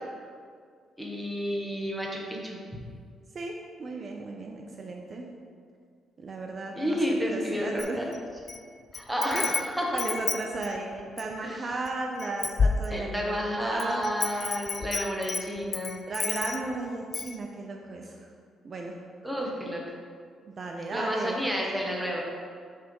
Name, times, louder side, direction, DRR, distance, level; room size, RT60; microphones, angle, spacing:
voice 1, 1.0-2.6 6.7-8.1 8.9-10.0 11.4-11.8 12.9-16.0 19.2-19.9 20.9-22.2, equal, ahead, -2 dB, 1.2 m, -31 dB
voice 2, 3.3-5.3 6.2-7.0 7.3-8.1 9.3-9.5 9.9-14.0 16.1-18.3 18.6-18.9 20.5-21.5, right 2 dB, 45° right, 1 dB, 0.6 m, -35 dB
Wind chime, 7.8-8.6 8.9-11.4 11.9-12.0 12.2-13.3 13.8-16.7 17.1-17.4, left 5 dB, 45° left, 0.4 m, -30 dB
6.5 x 3.4 x 5.4 m, 2.1 s
cardioid pair, 90°, 0 cm